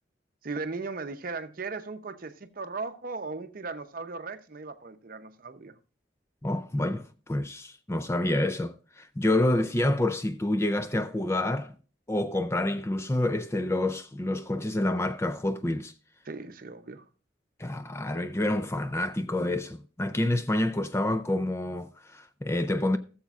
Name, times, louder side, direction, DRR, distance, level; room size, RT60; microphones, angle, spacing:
voice 1, 0.4-5.7 16.2-17.0, right 4 dB, 50° right, 0.7 m, -37 dB
voice 2, 6.4-11.7 12.1-15.9 17.6-23.0, left 1 dB, 15° left, 0.4 m, -28 dB
17.0 x 7.1 x 2.4 m
head